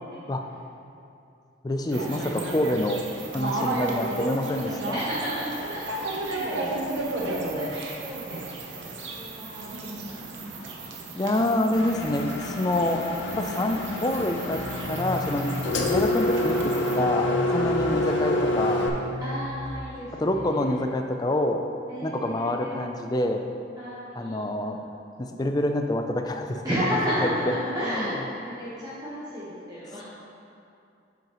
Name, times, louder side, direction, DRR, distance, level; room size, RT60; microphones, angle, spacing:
voice 1, 1.6-3.1 3.3-5.0 11.1-13.0 13.3-14.6 14.9-15.5 15.9-18.9 20.1-21.6 22.0-23.4 24.1-24.8 25.2-26.6 27.2-27.3 27.8-28.1, left 1 dB, 20° left, 5 dB, 0.4 m, -27 dB
sound 1, 1.9-17.0, right 2 dB, 70° right, 0.8 m, -34 dB
voice 2, 4.2-6.5 7.0-8.8 9.1-9.6 10.1-10.2 10.6-10.9 19.2-20.7 21.9-22.8 23.8-24.8 26.6-28.2 28.4-30.0, equal, 20° right, -10 dB, 1.0 m, -33 dB
Engine, 11.7-18.9, left 2 dB, 70° left, 0.7 m, -27 dB
sound 2, 14.4-20.5, left 1 dB, 45° left, 1.4 m, -37 dB
7.7 x 7.5 x 3.0 m, 2.6 s
head